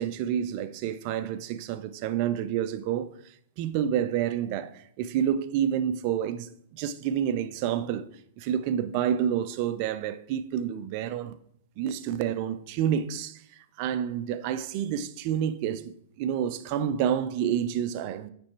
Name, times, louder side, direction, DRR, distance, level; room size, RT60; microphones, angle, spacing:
voice 1, 0.0-3.1 3.6-8.1 8.4-11.3 11.8-13.4 13.8-18.3, right 9 dB, 45° right, 0.5 m, -29 dB
8.5 x 3.4 x 4.6 m
hypercardioid pair, 110°, 0 cm